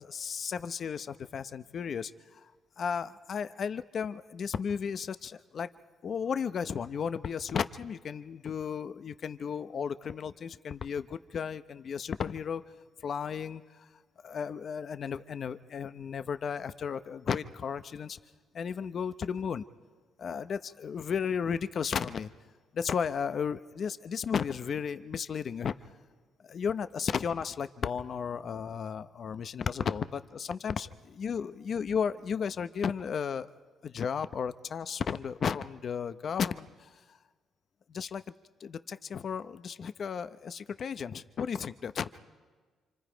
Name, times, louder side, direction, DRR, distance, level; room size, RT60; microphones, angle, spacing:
voice 1, 0.0-2.5 2.8-5.7 6.0-12.6 13.0-13.9 14.2-18.2 18.5-19.6 20.2-22.3 22.7-25.7 26.4-33.5 33.8-36.9 37.9-38.2 38.6-42.2, left 7 dB, 55° left, 12 dB, 0.7 m, -34 dB
28.0 x 26.0 x 5.1 m, 1.4 s
cardioid pair, 90°, 0 cm